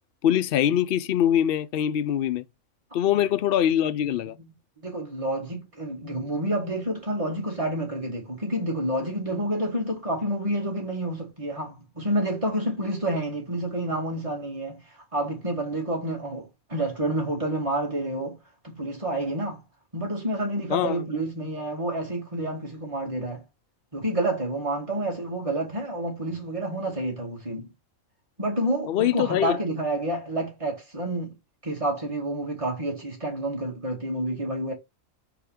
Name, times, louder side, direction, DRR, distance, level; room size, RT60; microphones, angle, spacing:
voice 1, 0.2-2.4 2.9-4.3 20.7-21.1 28.9-29.6, left 10 dB, 60° left, 0.6 m, -23 dB
voice 2, 4.8-14.8 15.1-18.4 18.6-19.6 19.9-23.4 23.9-27.7 28.4-31.3 31.6-34.7, right 1 dB, 25° right, 2.5 m, -29 dB
5.0 x 4.7 x 5.0 m
omnidirectional pair, 1.4 m